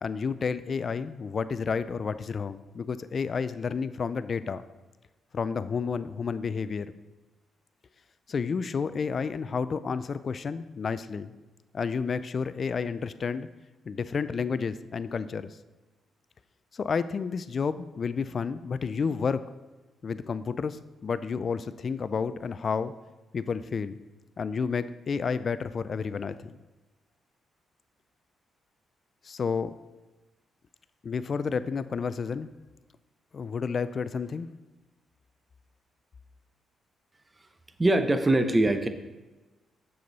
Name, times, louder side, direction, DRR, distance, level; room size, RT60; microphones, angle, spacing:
voice 1, 0.0-4.6 5.3-6.9 8.3-11.3 11.7-13.5 13.9-15.6 16.7-19.5 20.0-22.9 23.3-24.0 24.4-26.6 29.2-29.8 31.0-32.5 33.3-34.5, left 5 dB, 50° left, 14 dB, 0.4 m, -31 dB
voice 2, 37.8-38.9, right 1 dB, 20° right, 9 dB, 0.7 m, -22 dB
7.0 x 6.5 x 4.1 m, 1.2 s
cardioid pair, 85°, 0 cm